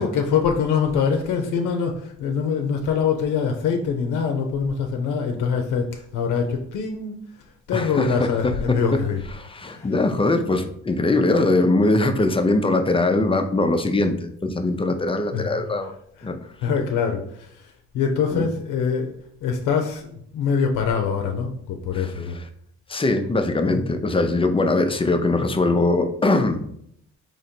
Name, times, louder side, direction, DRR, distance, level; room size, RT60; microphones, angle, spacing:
voice 1, 0.0-7.2 7.7-9.2 9.7-9.9 15.3-15.6 16.2-16.3 16.6-17.7 17.9-22.4, left 6 dB, 80° left, 3 dB, 0.6 m, -24 dB
voice 2, 7.7-9.0 9.4-15.9 16.2-16.4 18.3-18.5 21.9-22.4 22.9-26.6, left 2 dB, 20° left, 6 dB, 0.5 m, -21 dB
3.7 x 3.0 x 4.3 m, 0.68 s
cardioid pair, 90°, 30 cm